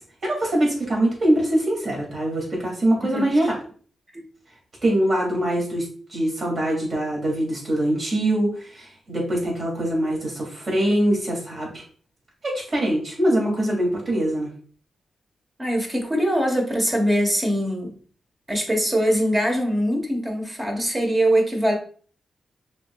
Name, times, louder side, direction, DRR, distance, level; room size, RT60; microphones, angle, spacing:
voice 1, 0.2-3.6 4.8-11.8 12.4-14.5, right 1 dB, 45° right, -1 dB, 2.4 m, -23 dB
voice 2, 15.6-17.9 18.5-21.8, equal, 25° right, 1 dB, 1.1 m, -22 dB
6.0 x 3.6 x 2.3 m, 0.43 s
wide cardioid pair, 115°, 0 cm